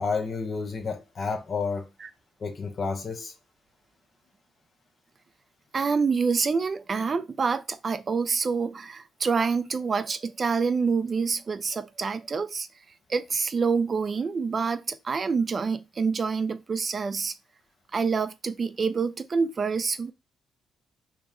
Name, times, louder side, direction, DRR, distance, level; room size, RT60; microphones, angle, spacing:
voice 1, 0.0-1.9 2.4-3.3, left 4 dB, 50° left, 0.7 m, -30 dB
voice 2, 5.7-12.7 13.1-17.3 17.9-20.1, right 5 dB, 45° right, 0.4 m, -27 dB
4.0 x 2.1 x 3.6 m
supercardioid pair, 65°, 0 cm